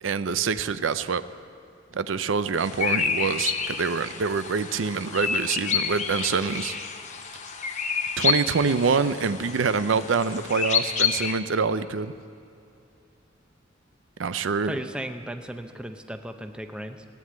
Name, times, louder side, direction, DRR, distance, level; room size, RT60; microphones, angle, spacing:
voice 1, 0.0-1.2 1.9-6.7 8.2-12.1 14.2-14.8, right 5 dB, 90° right, 13 dB, 0.5 m, -25 dB
sound 1, 2.6-11.3, left 6 dB, 40° left, 0.9 m, -29 dB
voice 2, 14.7-17.0, right 1 dB, 5° right, 6 dB, 0.6 m, -35 dB
16.0 x 9.5 x 8.7 m, 2.6 s
head